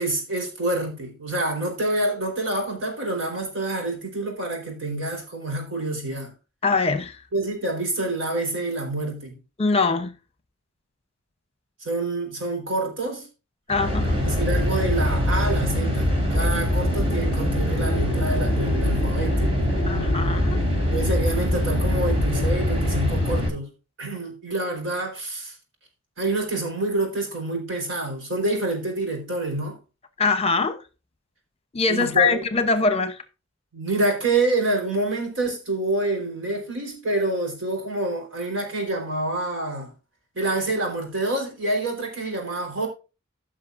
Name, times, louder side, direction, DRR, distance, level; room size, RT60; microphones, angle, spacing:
voice 1, 0.0-6.3 7.3-9.4 11.8-13.3 14.2-19.5 20.9-23.7 24.0-25.5 26.2-29.8 31.9-32.4 33.7-39.9 40.3-42.9, right 2 dB, 75° right, 4.3 m, -27 dB
voice 2, 6.6-7.1 9.6-10.1 13.7-14.2 19.9-20.6 30.2-30.8 31.7-33.2, left 4 dB, 30° left, 0.9 m, -22 dB
sound 1, 13.7-23.5, left 1 dB, 30° right, 3.2 m, -23 dB
15.5 x 6.1 x 2.6 m
head